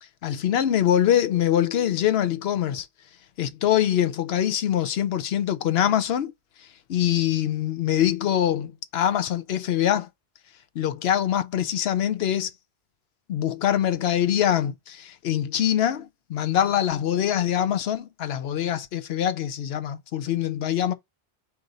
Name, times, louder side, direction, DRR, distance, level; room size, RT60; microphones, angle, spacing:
voice 1, 0.2-2.9 3.4-6.3 6.9-10.1 10.8-12.5 13.3-20.9, left 10 dB, 80° left, 0.9 m, -24 dB
4.7 x 2.6 x 3.8 m
omnidirectional pair, 1.1 m